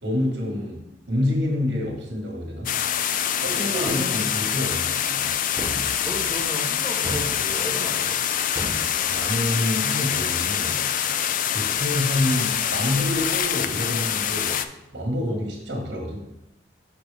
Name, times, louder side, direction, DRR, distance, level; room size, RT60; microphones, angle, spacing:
voice 1, 0.0-2.7 3.4-5.3 9.1-11.1 11.5-14.6 14.9-16.2, left 1 dB, 65° right, 0 dB, 1.6 m, -27 dB
sound 1, 2.7-14.7, left 9 dB, 45° left, 0.3 m, -25 dB
voice 2, 3.5-4.6 6.0-8.2 15.3-15.4, equal, 15° left, -1 dB, 0.9 m, -35 dB
sound 2, 3.9-4.6 5.6-6.4 7.0-7.8 8.6-9.6, equal, 15° right, 0.8 m, -35 dB
6.1 x 5.8 x 3.4 m, 0.93 s
head